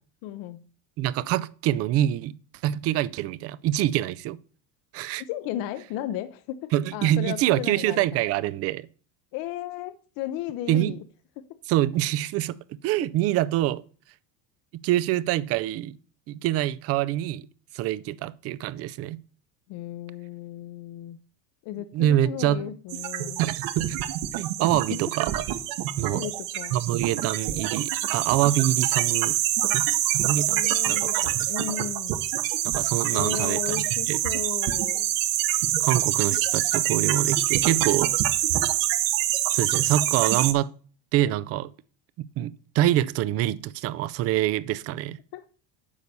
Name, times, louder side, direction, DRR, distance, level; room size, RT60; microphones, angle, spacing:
voice 1, 0.2-0.7 5.2-8.2 9.3-11.0 19.7-21.2 21.6-23.4 24.7-25.0 26.0-26.8 30.5-32.2 33.1-35.1 45.3-45.4, left 12 dB, 50° left, 0.7 m, -35 dB
voice 2, 1.0-2.3 2.6-4.4 4.9-5.2 6.7-8.9 10.7-11.0 11.7-13.8 14.8-16.0 16.3-17.5 17.7-19.2 21.9-22.7 23.4-24.0 24.4-25.4 26.0-26.2 26.7-29.4 29.7-29.8 30.2-31.2 32.6-34.2 35.7-38.1 39.5-40.7 41.1-41.7 42.4-45.2, right 13 dB, 35° right, 0.4 m, -25 dB
sound 1, 22.9-40.5, right 13 dB, 50° right, 1.0 m, -26 dB
9.8 x 4.0 x 6.8 m
supercardioid pair, 140°, 43 cm